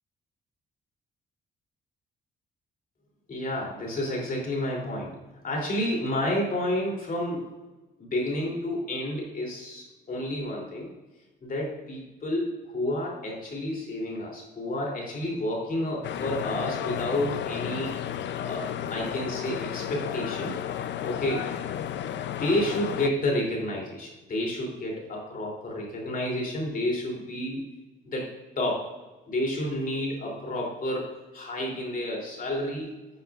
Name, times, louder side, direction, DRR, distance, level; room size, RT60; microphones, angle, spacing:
voice 1, 3.3-5.1 5.4-7.4 8.0-10.9 11.4-18.6 18.9-20.6 21.0-21.4 22.4-27.6 28.0-28.3 28.6-28.8 29.3-31.1 31.3-32.9, left 1 dB, 45° left, -2 dB, 3.1 m, -30 dB
sound 1, 16.0-23.1, left 10 dB, 65° left, 0.5 m, -33 dB
11.5 x 7.8 x 2.5 m, 1.1 s
cardioid pair, 90°, 20 cm